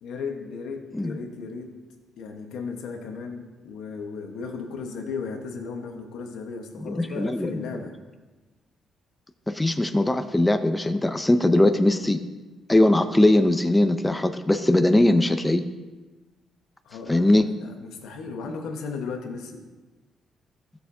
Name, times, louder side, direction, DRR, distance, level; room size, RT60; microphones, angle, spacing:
voice 1, 0.0-1.7 2.2-7.9 16.8-19.7, left 5 dB, 85° left, 4 dB, 1.1 m, -35 dB
voice 2, 6.8-7.8 9.5-12.2 12.7-15.6 17.1-17.4, left 1 dB, 10° left, 9 dB, 0.5 m, -20 dB
15.0 x 6.6 x 2.7 m, 1.2 s
cardioid pair, 90°, 0 cm